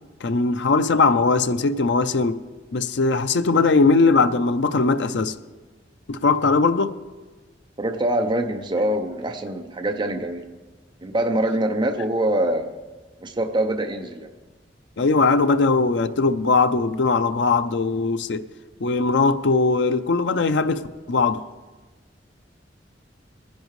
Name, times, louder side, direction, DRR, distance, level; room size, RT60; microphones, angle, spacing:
voice 1, 0.2-2.4 2.7-5.3 6.1-6.9 15.0-18.5 18.8-21.4, left 3 dB, 70° left, 0.5 m, -20 dB
voice 2, 7.8-10.5 11.0-12.7 13.2-14.3, right 1 dB, 25° right, 0.6 m, -24 dB
21.0 x 10.5 x 3.1 m
head